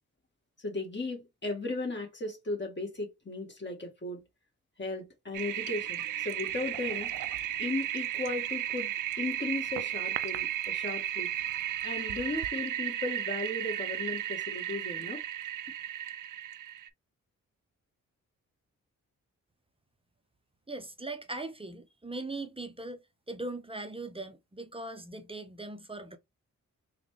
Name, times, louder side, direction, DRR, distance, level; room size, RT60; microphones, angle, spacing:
voice 1, 0.6-4.2 4.8-7.1 7.6-8.9 9.2-11.3 11.8-15.2, left 2 dB, 35° left, 1.5 m, -36 dB
Toilet flush, 5.3-16.9, right 12 dB, 70° right, 0.5 m, -34 dB
voice 2, 20.7-26.2, right 2 dB, 15° right, 0.6 m, -40 dB
3.8 x 2.3 x 3.2 m
cardioid pair, 60°, 33 cm